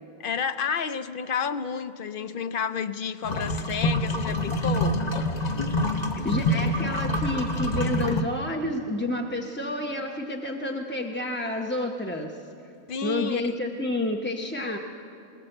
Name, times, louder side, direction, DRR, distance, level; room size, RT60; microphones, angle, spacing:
voice 1, 0.2-5.1 12.9-13.5, left 6 dB, 55° left, 0.6 m, -30 dB
sound 1, 3.2-8.2, left 1 dB, 30° left, 1.0 m, -26 dB
voice 2, 6.2-12.4 13.0-14.8, left 1 dB, 10° left, 0.7 m, -29 dB
21.0 x 18.5 x 7.8 m
omnidirectional pair, 1.5 m